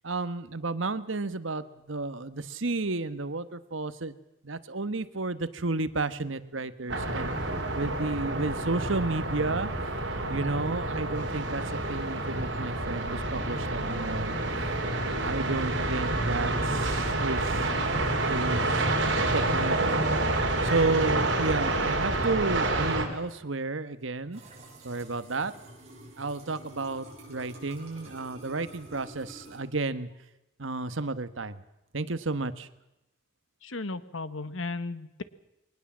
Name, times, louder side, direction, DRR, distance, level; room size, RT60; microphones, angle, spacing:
voice 1, 0.0-4.2 4.4-7.3 7.7-9.7 10.3-14.3 15.2-17.7 18.3-18.8 19.3-20.0 20.6-24.4 24.8-25.5 26.2-30.1 30.6-31.6 31.9-32.7, right 3 dB, 80° right, 12 dB, 1.3 m, -32 dB
sound 1, 6.9-23.1, right 2 dB, 65° right, 4.1 m, -28 dB
sound 2, 24.3-29.6, right 1 dB, 30° right, 7.1 m, -49 dB
voice 2, 33.6-35.2, left 3 dB, 85° left, 13 dB, 1.3 m, -35 dB
22.0 x 19.5 x 7.4 m, 0.90 s
head